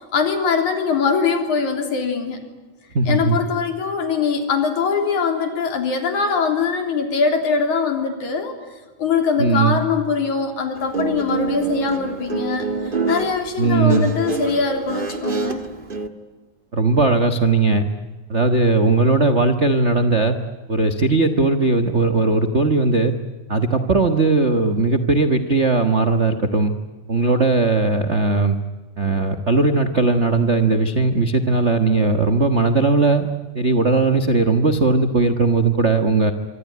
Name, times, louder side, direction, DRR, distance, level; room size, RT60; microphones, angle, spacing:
voice 1, 0.1-2.4 3.1-8.5 9.0-15.6, left 5 dB, 70° left, 5 dB, 4.9 m, -22 dB
voice 2, 2.9-3.4 9.4-9.8 13.6-14.1 16.7-17.8 18.3-20.4 20.7-23.1 23.5-26.7 27.1-28.6 29.0-33.3 33.5-36.3, right 3 dB, 75° right, 10 dB, 0.6 m, -18 dB
Guitar, 10.8-16.1, right 4 dB, 30° right, 1.0 m, -26 dB
25.5 x 24.5 x 9.5 m, 1.3 s
omnidirectional pair, 3.5 m